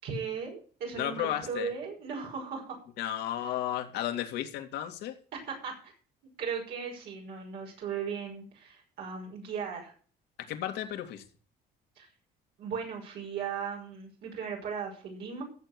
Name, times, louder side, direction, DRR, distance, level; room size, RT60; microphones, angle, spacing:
voice 1, 0.0-2.8 5.3-5.9 6.4-9.9 12.0-12.1 12.6-15.4, right 6 dB, 75° right, 0 dB, 5.6 m, -37 dB
voice 2, 0.9-1.7 3.0-5.1 10.5-11.2, left 11 dB, 80° left, 5 dB, 2.3 m, -33 dB
15.0 x 7.0 x 6.0 m, 0.42 s
cardioid pair, 110°, 17 cm